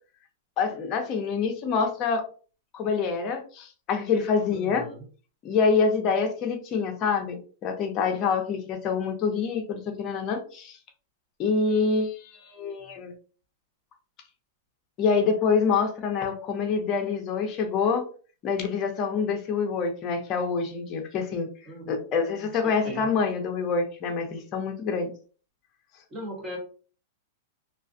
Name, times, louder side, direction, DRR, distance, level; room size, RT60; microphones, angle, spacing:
voice 1, 0.6-2.3 2.7-4.9 5.4-10.8 11.4-13.1 15.0-18.0 18.4-21.5 21.9-25.1, left 5 dB, 35° left, 4 dB, 0.7 m, -26 dB
voice 2, 4.5-5.0 21.7-22.5 22.8-23.1 26.1-26.6, right 1 dB, 20° right, -1 dB, 1.2 m, -39 dB
2.4 x 2.3 x 2.6 m, 0.40 s
hypercardioid pair, 135°, 0 cm